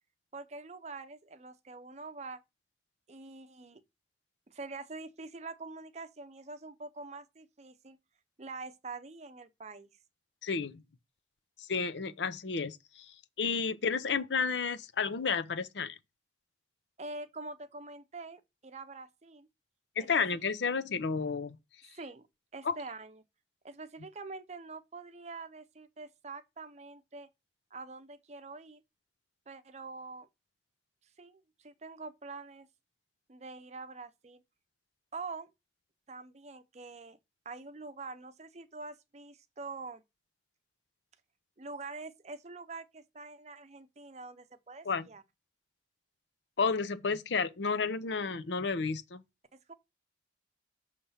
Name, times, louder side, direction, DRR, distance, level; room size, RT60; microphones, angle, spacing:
voice 1, 0.3-2.4 3.1-3.8 4.5-8.0 8.4-9.9 17.0-19.5 20.0-20.2 20.6-20.8 21.9-22.3 22.5-23.2 23.6-27.3 27.7-28.8 29.5-30.3 31.2-32.7 33.3-34.4 35.1-35.5 36.1-37.2 37.4-40.0 41.6-45.2 49.5-49.7, right 3 dB, 40° right, 0.6 m, -45 dB
voice 2, 10.4-10.8 11.6-13.1 13.4-16.0 20.0-21.6 22.6-22.8 44.8-45.1 46.6-49.2, left 5 dB, 85° left, 0.6 m, -31 dB
6.8 x 3.3 x 5.6 m
head